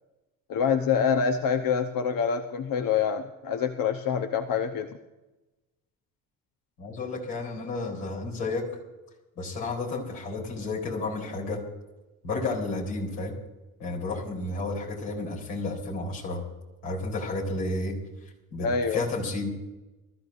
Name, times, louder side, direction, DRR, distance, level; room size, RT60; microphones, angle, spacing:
voice 1, 0.5-4.9 18.6-19.0, left 6 dB, 50° left, 6 dB, 1.0 m, -26 dB
voice 2, 6.8-8.7 9.4-11.6 12.2-13.3 13.8-16.4 16.8-18.0 18.5-19.5, left 2 dB, 80° left, -3 dB, 4.0 m, -31 dB
24.0 x 13.5 x 2.6 m, 1.1 s
hypercardioid pair, 50°, 43 cm